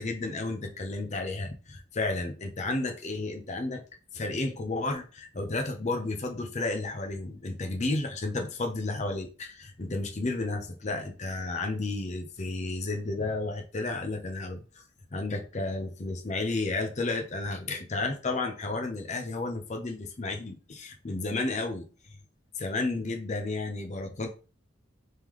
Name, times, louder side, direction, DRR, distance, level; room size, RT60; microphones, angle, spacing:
voice 1, 0.0-3.8 4.1-14.6 15.1-21.9 22.6-24.3, left 2 dB, 35° left, 0.6 m, -32 dB
3.7 x 3.2 x 3.1 m
head